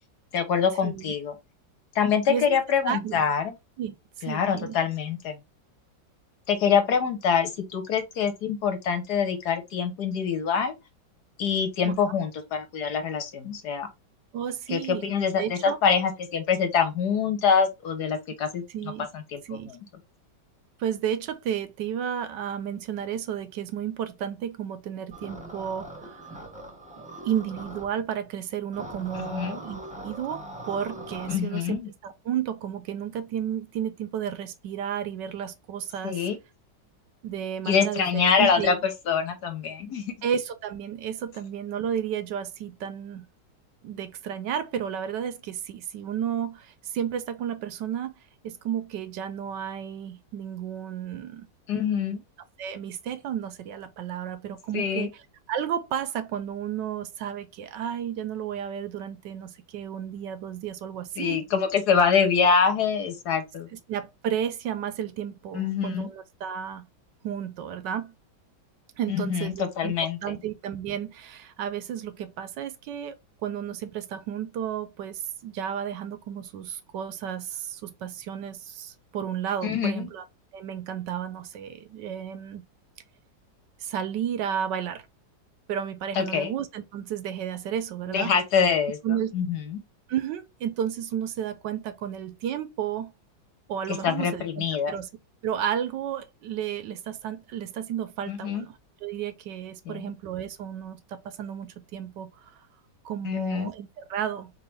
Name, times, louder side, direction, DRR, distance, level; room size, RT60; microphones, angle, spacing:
voice 1, 0.3-1.3 1.9-3.5 4.2-5.4 6.5-10.7 11.4-13.9 14.7-19.8 29.1-29.6 31.3-31.9 36.0-36.4 37.6-40.1 51.7-52.2 54.7-55.1 61.2-63.7 65.5-66.1 69.1-70.2 79.6-80.1 86.1-86.5 88.1-89.0 89.3-89.8 93.9-94.9 98.3-98.7 99.9-100.0 103.2-103.7, left 6 dB, 60° left, 1.4 m, -25 dB
voice 2, 0.8-1.1 2.3-2.6 2.9-3.2 3.8-4.8 11.8-11.9 14.3-15.1 15.4-15.8 18.7-19.1 19.4-19.7 20.8-26.2 27.2-36.2 37.2-38.8 40.2-43.2 43.8-48.1 48.4-51.5 52.6-55.1 55.5-61.4 63.9-66.9 67.2-68.1 69.0-69.6 69.8-69.9 70.2-73.2 73.4-80.2 80.5-82.6 83.8-85.0 85.7-88.3 89.0-89.3 90.1-93.1 93.7-95.1 95.4-98.7 99.0-102.3 103.0-104.5, right 9 dB, 75° right, 1.2 m, -32 dB
sound 1, 25.1-27.8 28.7-31.3, right 1 dB, 5° right, 0.9 m, -41 dB
4.6 x 3.2 x 3.2 m
omnidirectional pair, 2.1 m